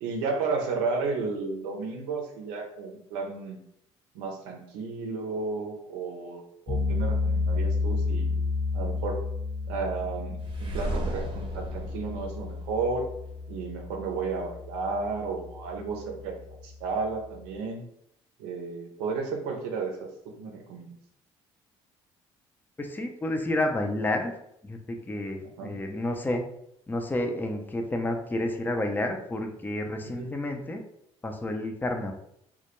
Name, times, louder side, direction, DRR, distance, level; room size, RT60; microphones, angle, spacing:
voice 1, 0.0-3.6 4.1-8.4 8.7-9.2 9.7-13.1 13.5-17.8 18.4-20.9 25.4-25.7 30.0-30.3, right 4 dB, 85° right, 2 dB, 0.5 m, -33 dB
sound 1, 6.7-17.6, left 4 dB, 40° left, 0.9 m, -32 dB
sound 2, 10.4-13.4, right 2 dB, 40° right, 0.7 m, -36 dB
voice 2, 22.8-24.3 24.6-26.4 26.9-30.8 31.2-32.1, left 1 dB, 15° left, 4 dB, 0.4 m, -30 dB
2.2 x 2.0 x 2.9 m, 0.74 s
hypercardioid pair, 60°, 14 cm